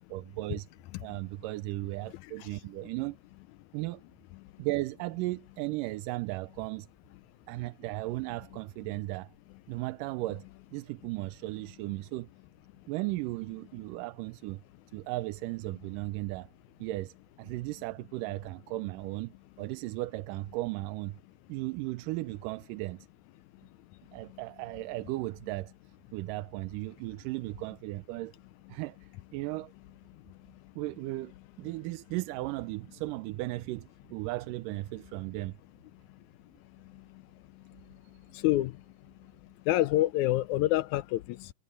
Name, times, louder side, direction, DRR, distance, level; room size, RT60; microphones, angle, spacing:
voice 1, 0.1-0.7 1.0-3.2 3.7-4.0 4.6-6.9 7.5-9.3 9.7-10.4 10.7-12.3 12.9-14.6 14.9-16.5 16.8-21.2 21.5-23.0 24.1-25.7 26.1-28.3 28.7-29.7 30.8-31.3 31.6-35.6, right 19 dB, 85° right, 2.2 m, -36 dB
voice 2, 38.3-38.8 39.7-41.5, left 15 dB, 80° left, 1.7 m, -27 dB
omnidirectional pair, 3.8 m